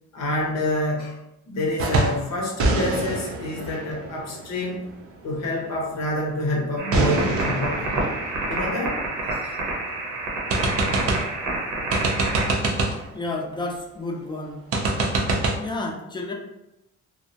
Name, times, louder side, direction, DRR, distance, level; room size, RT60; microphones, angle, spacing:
voice 1, 0.1-1.1 1.5-4.8 5.2-9.0 9.3-9.6, left 1 dB, 60° left, -1 dB, 0.7 m, -28 dB
sound 1, 1.8-2.3 2.6-5.2 6.9-9.6 10.0-10.1 10.5-11.4 11.9-13.1 14.7-15.6, right 2 dB, 50° right, 0.5 m, -25 dB
sound 2, 6.8-12.5, right 2 dB, 85° right, 0.8 m, -28 dB
voice 2, 13.1-14.6 15.6-16.3, left 2 dB, 15° left, 0 dB, 0.4 m, -31 dB
2.3 x 2.0 x 2.7 m, 0.87 s
cardioid pair, 90°, 30 cm